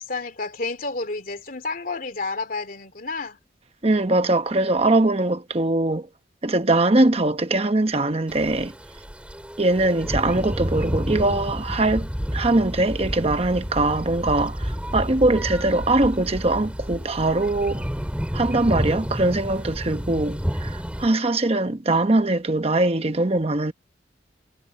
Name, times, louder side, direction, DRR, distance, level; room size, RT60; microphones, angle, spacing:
voice 1, 0.0-3.4, left 3 dB, 50° left, 2.8 m, -30 dB
voice 2, 3.8-6.1 6.4-8.7 9.6-17.8 18.3-23.7, right 2 dB, 35° right, 1.0 m, -22 dB
sound 1, 8.3-21.1, equal, 5° right, 2.6 m, -30 dB
head